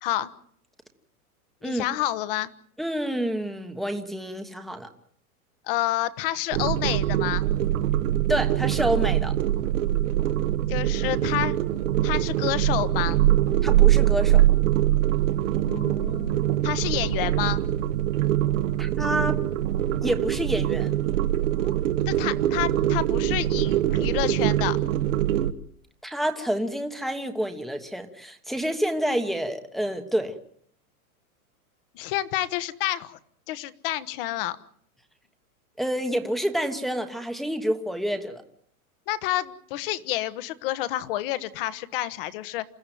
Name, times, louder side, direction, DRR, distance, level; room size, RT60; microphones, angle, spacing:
voice 1, 1.6-2.5 5.7-7.4 10.7-11.6 12.0-13.2 15.7-17.6 21.5-21.8 22.1-24.8 31.9-33.2 33.5-34.6 39.1-42.6, left 14 dB, 40° left, 15 dB, 1.3 m, -29 dB
voice 2, 2.8-4.9 8.3-9.3 13.6-14.4 18.8-19.4 20.0-20.9 26.0-30.4 35.8-38.4, equal, ahead, 5 dB, 1.2 m, -28 dB
sound 1, 6.5-25.5, right 13 dB, 60° right, 1.4 m, -23 dB
28.0 x 14.5 x 9.3 m, 0.64 s
supercardioid pair, 165°, 43 cm